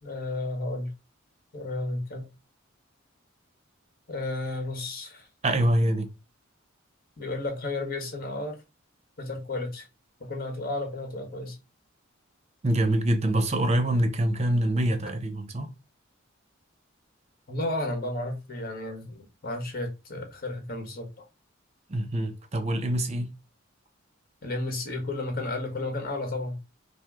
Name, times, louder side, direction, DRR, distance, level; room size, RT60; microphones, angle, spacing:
voice 1, 0.0-0.9 1.5-2.3 4.1-5.3 7.2-8.6 9.2-9.9 10.2-11.6 17.5-21.3 24.4-26.6, left 2 dB, 45° left, 1.3 m, -32 dB
voice 2, 5.4-6.1 12.6-15.7 21.9-23.3, right 1 dB, 30° right, 0.7 m, -25 dB
4.8 x 2.0 x 3.5 m
head